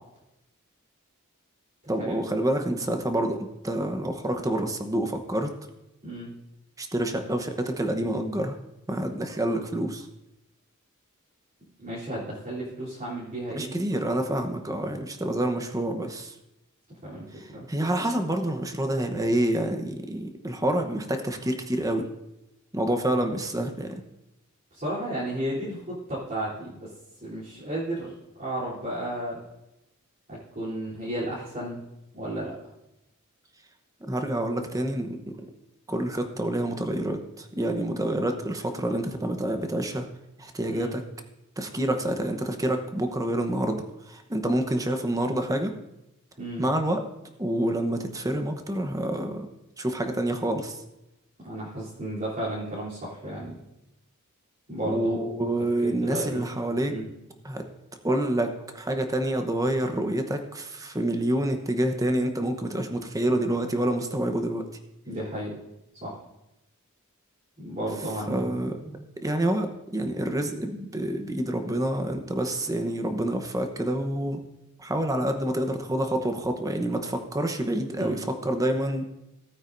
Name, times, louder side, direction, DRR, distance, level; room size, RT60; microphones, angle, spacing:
voice 1, 1.9-5.5 6.8-8.6 8.9-10.1 13.5-16.3 17.4-22.1 22.7-23.9 34.1-35.4 35.9-40.1 40.4-41.0 41.6-45.7 46.6-47.0 47.4-49.5 49.8-50.8 54.8-56.9 57.4-57.6 58.0-64.7 68.3-68.8 69.2-74.4 74.8-79.0, right 1 dB, 15° right, 6 dB, 1.0 m, -27 dB
voice 2, 11.8-13.8 17.0-17.7 24.7-26.9 27.2-28.1 28.4-29.4 30.3-31.8 32.1-32.5 40.7-40.9 46.4-46.6 51.4-53.5 54.7-55.3 55.8-56.4 56.8-57.1 65.0-65.5 65.9-66.2 67.6-69.0 77.9-78.2, right 1 dB, 40° right, -10 dB, 3.4 m, -33 dB
18.0 x 9.0 x 2.6 m, 0.91 s
head